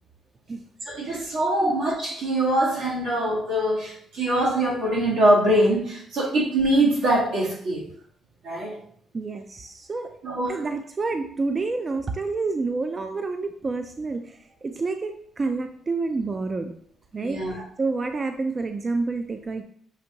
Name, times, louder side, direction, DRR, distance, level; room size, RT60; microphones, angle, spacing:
voice 1, 0.8-7.8 8.4-8.7 10.2-10.6 17.2-17.5, right 1 dB, 80° right, -4 dB, 1.6 m, -23 dB
voice 2, 9.1-10.1 10.5-16.7 17.1-19.6, right 3 dB, 30° right, 6 dB, 0.4 m, -29 dB
6.4 x 2.6 x 2.8 m, 0.62 s
cardioid pair, 90°, 0 cm